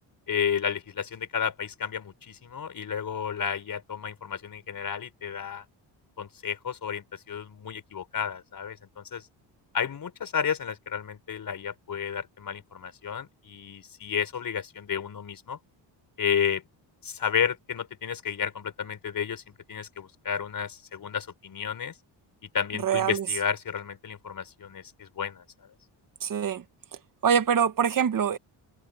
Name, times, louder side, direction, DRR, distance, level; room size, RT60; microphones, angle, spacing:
voice 1, 0.3-5.6 6.2-9.2 9.7-15.6 16.2-16.6 17.0-19.4 19.7-21.9 22.5-25.4, left 7 dB, 50° left, 4.2 m, -32 dB
voice 2, 22.8-23.3 26.2-26.6 27.2-28.4, right 7 dB, 45° right, 1.4 m, -24 dB
cardioid pair, 105°, 44 cm